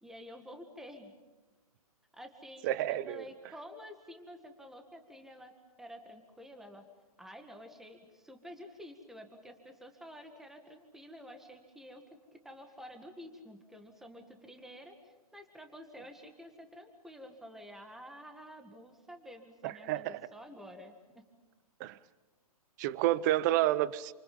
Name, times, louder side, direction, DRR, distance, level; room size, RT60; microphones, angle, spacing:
voice 1, 0.0-1.1 2.1-5.5 5.8-6.8 7.2-12.0 12.3-21.2, equal, ahead, 1.8 m, -50 dB
voice 2, 2.6-3.2 19.6-20.2 21.8-22.0 22.8-24.1, right 14 dB, 30° right, 0.8 m, -30 dB
28.5 x 27.0 x 5.4 m
hypercardioid pair, 155°, 20 cm